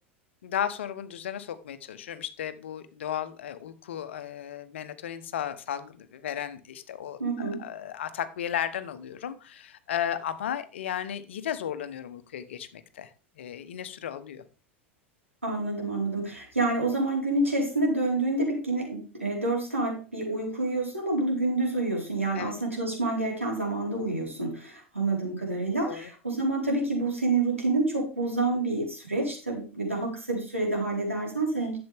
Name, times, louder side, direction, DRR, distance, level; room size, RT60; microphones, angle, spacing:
voice 1, 0.4-13.1 13.4-14.4 22.3-22.5 25.8-26.1, left 10 dB, 65° left, 13 dB, 1.1 m, -34 dB
voice 2, 7.2-7.6 15.4-31.8, right 2 dB, 90° right, -1 dB, 4.4 m, -28 dB
12.0 x 8.0 x 3.5 m, 0.34 s
figure-of-eight pair, 85°, 7 cm